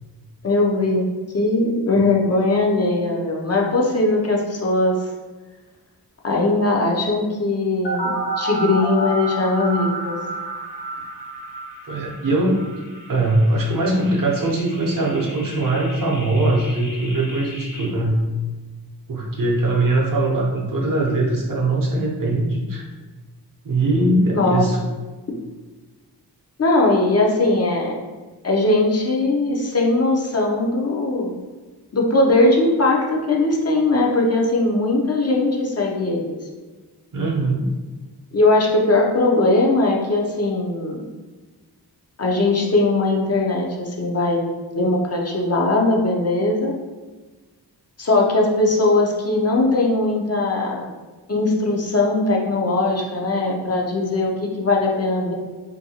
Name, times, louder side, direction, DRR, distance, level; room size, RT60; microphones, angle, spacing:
voice 1, 0.4-1.1 1.3-4.9 6.2-10.2 24.3-24.6 26.6-28.0 28.4-31.3 31.9-36.3 38.3-41.0 42.2-44.5 44.7-46.7 48.0-50.9 51.3-55.3, left 2 dB, 40° left, -1 dB, 0.5 m, -20 dB
sound 1, 7.8-17.8, right 1 dB, 75° left, 1.0 m, -31 dB
voice 2, 11.9-12.6 13.1-18.2 19.1-22.8 23.6-24.8 37.1-37.7, right 2 dB, 55° right, -1 dB, 0.7 m, -21 dB
2.7 x 2.6 x 2.7 m, 1.3 s
wide cardioid pair, 105°, 40 cm